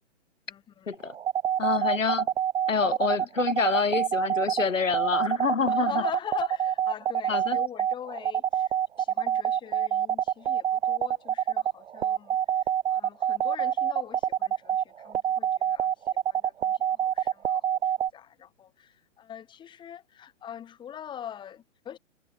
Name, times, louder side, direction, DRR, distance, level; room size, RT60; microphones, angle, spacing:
voice 1, 0.5-0.9 1.8-1.9 2.8-3.3 5.6-22.0, left 9 dB, 10° left, 3.0 m, -42 dB
sound 1, 0.9-18.1, right 10 dB, 55° right, 0.9 m, -26 dB
voice 2, 1.6-2.3 2.7-5.9 7.3-7.6, left 5 dB, 80° left, 2.8 m, -27 dB
figure-of-eight pair, 140°, 38 cm